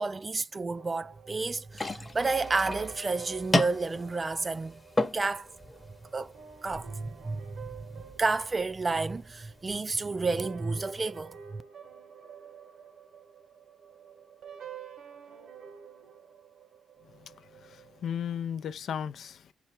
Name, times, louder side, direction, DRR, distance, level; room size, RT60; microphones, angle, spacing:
voice 1, 0.0-4.8 5.1-5.5 6.1-6.4 6.6-11.6, right 3 dB, 25° right, 0.3 m, -31 dB
sound 1, 0.8-18.1, right 7 dB, 80° right, 1.2 m, -50 dB
sound 2, 1.7-9.7, left 1 dB, 15° left, 0.9 m, -35 dB
voice 2, 17.0-19.5, left 8 dB, 60° left, 0.4 m, -36 dB
4.3 x 2.3 x 4.3 m
cardioid pair, 90°, 0 cm